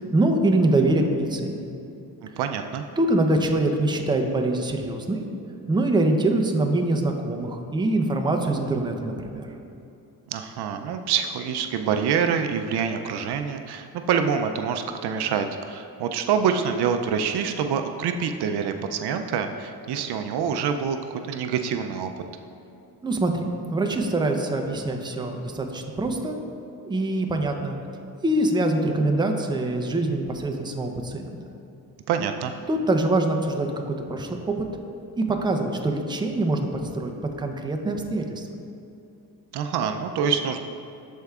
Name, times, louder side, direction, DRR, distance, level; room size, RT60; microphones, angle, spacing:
voice 1, 0.1-1.6 3.0-5.2 5.7-9.6 23.0-23.4 23.7-26.3 26.8-27.8 28.2-31.4 32.7-34.7 35.2-36.6 36.9-37.1 37.4-38.5, right 2 dB, 10° right, 3 dB, 0.6 m, -24 dB
voice 2, 2.4-2.8 10.3-22.1 32.1-32.5 39.5-40.6, right 7 dB, 70° right, 6 dB, 0.5 m, -26 dB
13.0 x 4.6 x 2.4 m, 2.7 s
cardioid pair, 100°, 42 cm